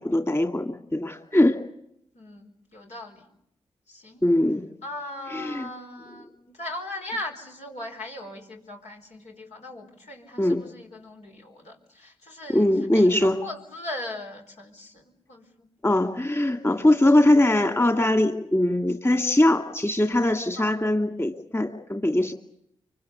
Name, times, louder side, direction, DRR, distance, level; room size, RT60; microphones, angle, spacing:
voice 1, 0.0-1.6 4.2-4.6 5.3-5.7 10.4-10.6 12.5-13.4 15.8-22.3, left 1 dB, 20° left, 6 dB, 2.4 m, -21 dB
voice 2, 2.1-3.3 3.9-4.2 4.8-15.7 20.6-20.9, left 1 dB, 80° left, 0 dB, 4.8 m, -39 dB
25.0 x 24.0 x 8.2 m, 0.74 s
supercardioid pair, 50°, 12 cm